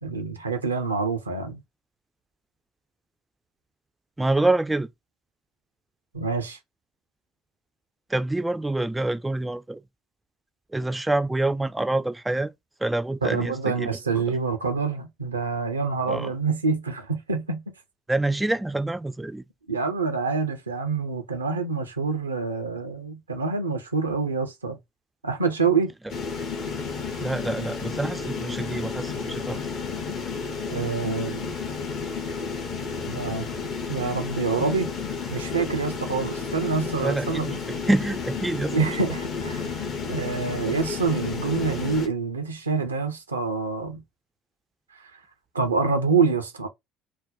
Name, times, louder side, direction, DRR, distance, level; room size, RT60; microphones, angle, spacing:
voice 1, 0.0-1.6 6.1-6.6 13.2-17.6 19.7-24.8 25.2-25.9 30.7-31.5 33.1-33.5 33.9-34.9 35.3-37.5 38.7-39.7 40.1-44.0 45.5-46.7, right 4 dB, 80° right, 0.5 m, -26 dB
voice 2, 4.2-4.9 8.1-9.8 10.7-12.5 12.8-14.4 16.1-16.3 18.1-19.4 27.2-29.8 37.0-39.2, right 2 dB, 10° right, 0.3 m, -27 dB
sound 1, 26.1-42.1, left 5 dB, 50° left, 0.7 m, -32 dB
2.5 x 2.1 x 3.7 m
figure-of-eight pair, 55°, 0 cm